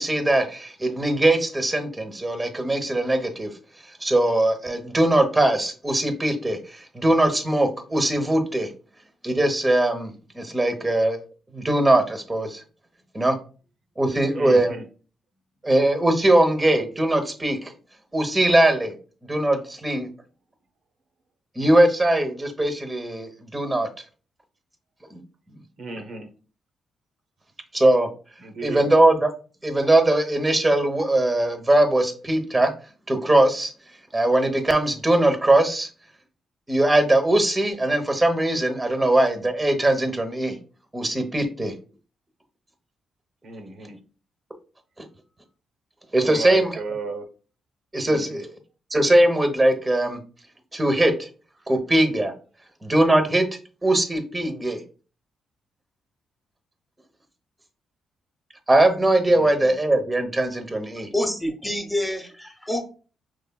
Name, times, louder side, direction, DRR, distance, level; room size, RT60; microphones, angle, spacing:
voice 1, 0.0-3.5 4.0-8.7 9.2-11.2 11.5-12.6 13.1-13.4 14.0-14.8 15.6-17.7 18.1-18.9 19.3-20.1 21.6-23.9 25.1-25.2 27.7-28.1 28.6-29.3 29.6-32.7 33.1-33.7 34.1-35.9 36.7-40.6 40.9-41.7 45.0-45.1 46.1-46.8 47.9-48.5 48.9-50.2 50.7-51.3 51.7-52.3 52.8-53.4 53.8-54.8 58.7-61.1, right 1 dB, 15° right, 7 dB, 0.8 m, -21 dB
voice 2, 14.1-14.9 25.8-26.3 28.4-28.9 43.4-44.0 46.2-47.2 48.0-48.4 59.3-59.8, right 3 dB, 65° right, 5 dB, 0.7 m, -35 dB
voice 3, 61.1-62.8, left 1 dB, 10° left, 2 dB, 1.0 m, -27 dB
5.4 x 3.1 x 2.2 m, 0.37 s
cardioid pair, 105°, 0 cm